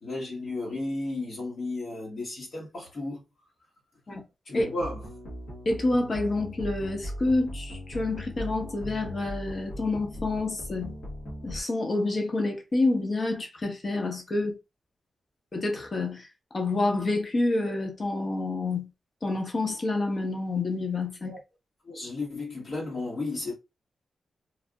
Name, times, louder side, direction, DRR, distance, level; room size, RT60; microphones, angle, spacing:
voice 1, 0.0-3.2 4.4-5.0 21.2-21.4 21.8-23.5, left 2 dB, 65° left, 1.4 m, -34 dB
sound 1, 4.6-11.6, equal, 85° left, 1.4 m, -39 dB
voice 2, 5.6-11.0 11.4-14.6 15.5-16.3 16.5-18.9 19.2-21.4, left 2 dB, 45° left, 1.1 m, -28 dB
3.3 x 2.4 x 2.4 m
cardioid pair, 55°, 0 cm